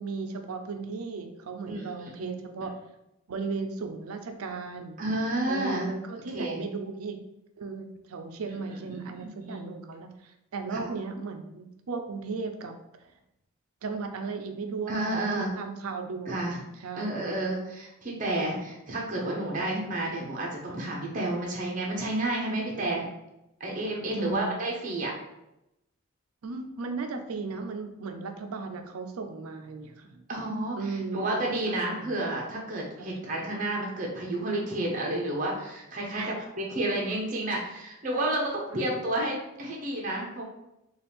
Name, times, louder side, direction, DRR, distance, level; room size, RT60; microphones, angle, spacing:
voice 1, 0.0-2.7 3.3-5.0 5.5-7.2 7.6-12.7 13.8-16.4 16.8-17.2 19.6-19.7 24.1-24.5 26.4-30.2 30.8-32.1 33.0-33.1 36.1-36.4 38.7-38.8, right 4 dB, 85° right, 6 dB, 0.5 m, -36 dB
voice 2, 1.7-2.4 5.0-5.9 6.3-6.6 8.5-8.6 8.9-9.0 9.4-9.6 10.7-10.8 14.9-15.5 16.3-16.6 16.9-23.1 23.6-25.1 30.3-40.4, right 1 dB, 35° right, -1 dB, 0.7 m, -31 dB
4.2 x 2.4 x 3.4 m, 0.87 s
head